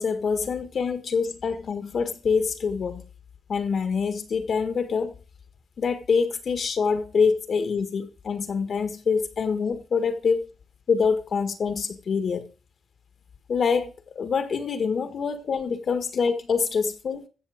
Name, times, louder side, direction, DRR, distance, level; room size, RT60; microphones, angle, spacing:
voice 1, 0.0-3.0 3.5-5.1 5.8-10.5 10.9-12.5 13.5-17.2, left 5 dB, 60° left, 1.5 m, -25 dB
15.0 x 7.0 x 5.0 m
cardioid pair, 85°, 0 cm